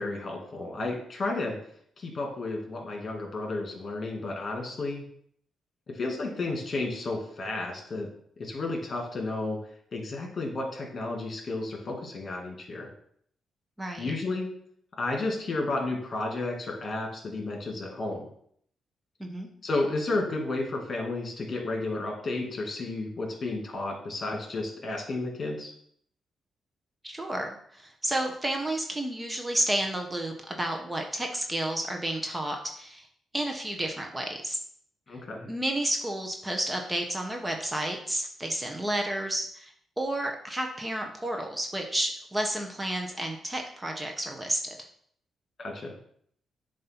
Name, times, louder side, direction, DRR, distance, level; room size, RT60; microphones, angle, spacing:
voice 1, 0.0-1.6 2.0-5.0 5.9-8.1 8.4-9.6 9.9-12.9 14.0-14.5 15.0-18.3 19.6-25.7 35.1-35.5 45.6-46.0, left 2 dB, 45° left, 1 dB, 2.0 m, -32 dB
voice 2, 13.8-14.1 19.2-19.5 27.0-33.0 33.3-34.6 35.5-44.6, right 1 dB, 15° right, 2 dB, 0.9 m, -31 dB
7.4 x 2.7 x 5.8 m, 0.63 s
cardioid pair, 85°, 0 cm